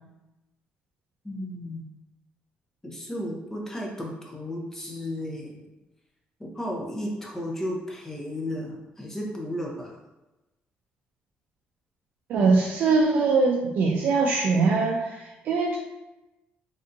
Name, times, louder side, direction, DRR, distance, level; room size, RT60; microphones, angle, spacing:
voice 1, 1.2-1.9 2.8-5.6 6.4-9.9, left 1 dB, 10° left, -1 dB, 0.7 m, -34 dB
voice 2, 12.3-15.8, right 4 dB, 65° right, -2 dB, 0.4 m, -22 dB
3.4 x 2.6 x 2.6 m, 1.0 s
cardioid pair, 115°, 4 cm